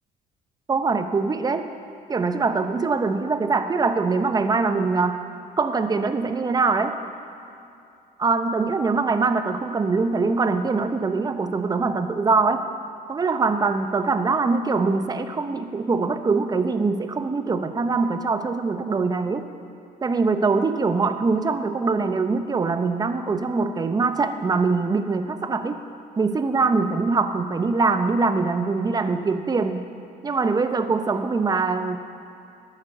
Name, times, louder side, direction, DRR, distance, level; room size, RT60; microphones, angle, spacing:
voice 1, 0.7-1.6 2.1-5.2 5.6-7.0 8.2-12.6 13.1-19.5 20.0-25.8 26.2-29.9 30.2-32.0, right 4 dB, 25° right, 9 dB, 0.7 m, -23 dB
11.5 x 9.1 x 6.4 m, 2.6 s
cardioid pair, 110°, 17 cm